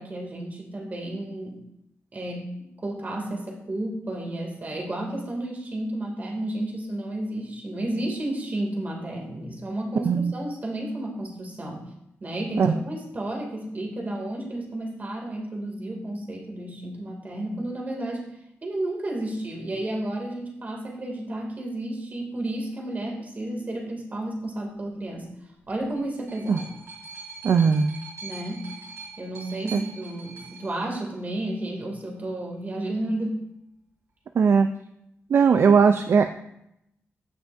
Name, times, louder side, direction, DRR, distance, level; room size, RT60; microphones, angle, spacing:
voice 1, 0.0-1.6 2.1-11.9 12.2-18.3 18.6-25.3 25.7-26.6 28.2-28.6 29.2-33.4, right 1 dB, 35° right, 0 dB, 2.4 m, -32 dB
sound 1, 25.6-31.6 32.5-32.6, right 4 dB, 85° right, 3.7 m, -43 dB
voice 2, 27.4-28.0 29.7-29.8 34.4-34.7 35.3-36.3, right 6 dB, 60° right, 8 dB, 0.4 m, -19 dB
16.0 x 5.9 x 2.6 m, 0.79 s
wide cardioid pair, 110°, 5 cm